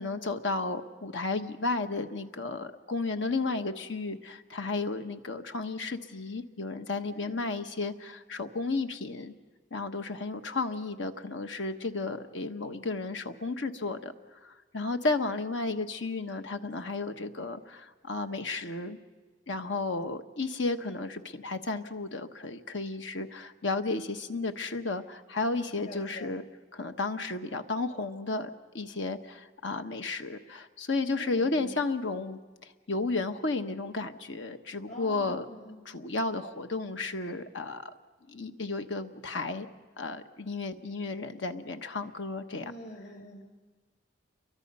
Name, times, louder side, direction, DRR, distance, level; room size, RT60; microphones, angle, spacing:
voice 1, 0.0-9.3 9.7-14.1 14.4-19.0 19.5-26.4 26.7-28.5 28.7-35.5 35.8-37.8 38.3-39.7 40.0-42.7, left 3 dB, 85° left, 7 dB, 1.2 m, -33 dB
voice 2, 7.1-7.4 25.8-26.4 31.1-31.7 34.9-35.8 42.6-43.4, equal, 45° left, 4 dB, 5.5 m, -45 dB
29.0 x 23.5 x 5.5 m, 1.3 s
head